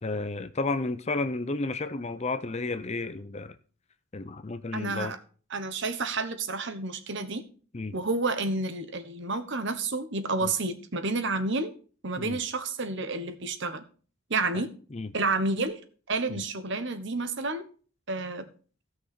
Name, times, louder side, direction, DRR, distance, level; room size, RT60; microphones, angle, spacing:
voice 1, 0.0-3.6 4.1-5.1 7.7-8.0 10.4-10.5 12.2-12.4 14.5-14.6 14.9-15.1 16.3-16.4, left 3 dB, 30° left, 0.5 m, -32 dB
voice 2, 4.7-5.2 5.5-7.4 7.9-11.7 12.0-13.8 14.3-14.7 15.1-15.8 16.1-17.7 18.1-18.5, right 3 dB, 55° right, 1.1 m, -30 dB
16.5 x 6.0 x 4.3 m
head